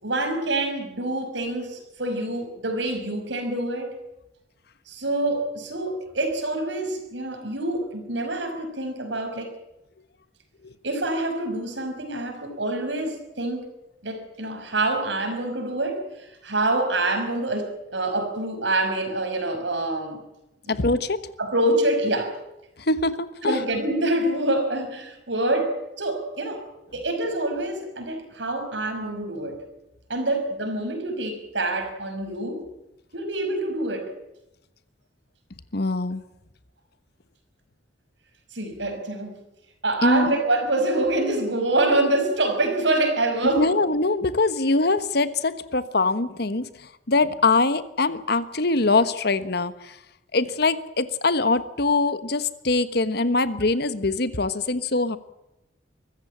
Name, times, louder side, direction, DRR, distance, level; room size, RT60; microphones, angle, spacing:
voice 1, 0.0-3.9 4.9-9.5 10.8-13.6 14.0-16.0 16.4-20.2 20.6-20.8 21.4-22.3 23.4-26.6 26.9-29.6 30.1-32.6 33.1-34.1 38.5-39.4 39.8-43.6, right 2 dB, 75° right, 6 dB, 5.7 m, -26 dB
voice 2, 20.7-21.2 22.8-23.6 35.7-36.2 40.0-40.3 43.6-50.0 50.3-55.2, left 3 dB, 60° left, 13 dB, 1.3 m, -23 dB
23.5 x 15.0 x 8.8 m, 0.90 s
head